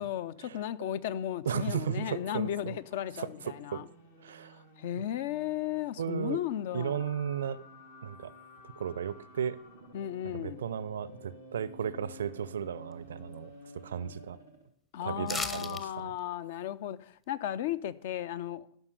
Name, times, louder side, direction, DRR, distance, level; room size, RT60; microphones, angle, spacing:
voice 1, 0.0-3.8 4.8-7.2 9.9-10.6 14.9-18.7, left 11 dB, 55° left, 0.4 m, -35 dB
voice 2, 1.5-2.8 3.2-3.8 4.2-4.6 6.0-6.4 6.7-7.6 8.0-8.3 8.6-9.6 10.3-14.4 15.0-16.1, right 8 dB, 65° right, 0.4 m, -35 dB
sound 1, 2.0-14.7, left 1 dB, 70° left, 1.9 m, -53 dB
sound 2, 15.3-15.8 16.2-16.3, left 3 dB, 15° left, 0.7 m, -35 dB
11.5 x 5.4 x 6.6 m
figure-of-eight pair, 90°, 0 cm